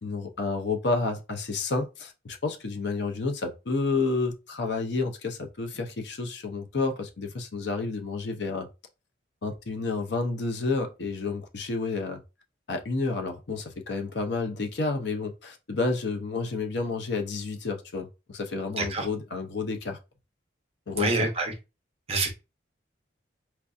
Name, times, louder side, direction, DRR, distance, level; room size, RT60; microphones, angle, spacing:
voice 1, 0.0-8.7 9.4-12.2 12.7-20.0 20.9-21.3, left 3 dB, 65° left, 0.6 m, -30 dB
voice 2, 21.0-21.5 22.1-22.3, right 3 dB, 30° right, 0.7 m, -26 dB
4.4 x 2.6 x 2.3 m
head